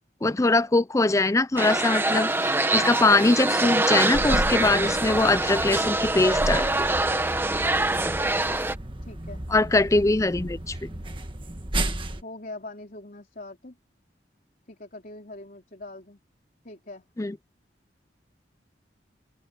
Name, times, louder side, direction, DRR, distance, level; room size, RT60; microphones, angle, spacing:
voice 1, 0.2-6.9 9.5-10.9 17.2-17.3, left 2 dB, 20° left, 0.5 m, -22 dB
sound 1, 1.6-8.7, right 2 dB, 15° right, 1.3 m, -24 dB
sound 2, 4.1-12.2, right 1 dB, 30° right, 1.7 m, -33 dB
voice 2, 8.2-8.6 9.0-9.4 10.9-11.2 12.2-13.7 14.7-16.2 16.6-17.0, left 2 dB, 50° left, 3.7 m, -42 dB
open air
head